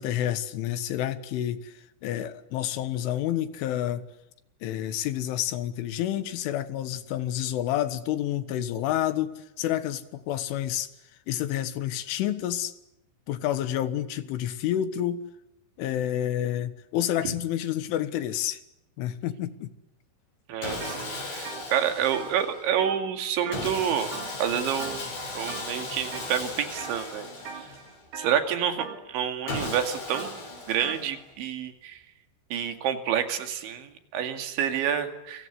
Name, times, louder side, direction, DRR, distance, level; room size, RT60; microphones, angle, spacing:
voice 1, 0.0-4.1 4.6-10.9 11.3-12.8 13.3-15.2 15.8-18.6 19.0-19.7, left 11 dB, 85° left, 12 dB, 4.0 m, -29 dB
voice 2, 20.5-24.1 24.4-25.0 25.4-27.3 27.5-27.6 28.2-32.0 32.5-35.5, right 9 dB, 75° right, 7 dB, 4.6 m, -28 dB
Sawing, 20.6-22.7 23.5-28.1 29.5-31.3, left 2 dB, 60° left, 9.4 m, -36 dB
sound 1, 20.8-21.0 21.3-23.8 24.1-24.5 24.8-25.2 25.5-26.3 26.8-27.1 27.4-31.1, right 6 dB, 60° right, 5.2 m, -41 dB
28.5 x 24.5 x 8.3 m, 0.85 s
omnidirectional pair, 5.4 m